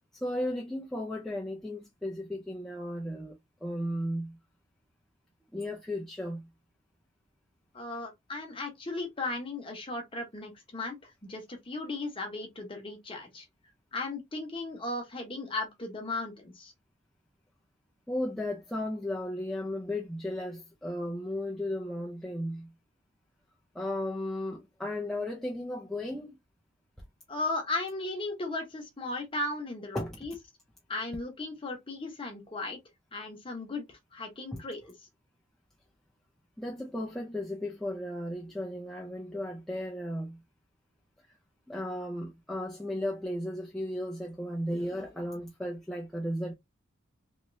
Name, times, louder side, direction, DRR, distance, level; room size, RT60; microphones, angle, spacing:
voice 1, 0.1-4.4 5.5-6.5 18.1-22.7 23.7-26.4 29.9-30.2 34.5-34.6 36.6-40.4 41.7-46.5, left 1 dB, ahead, 0.4 m, -35 dB
voice 2, 7.7-13.5 13.9-16.7 27.3-30.3 30.9-32.8 33.1-34.9, left 2 dB, 25° left, 0.8 m, -36 dB
3.0 x 2.8 x 2.6 m
head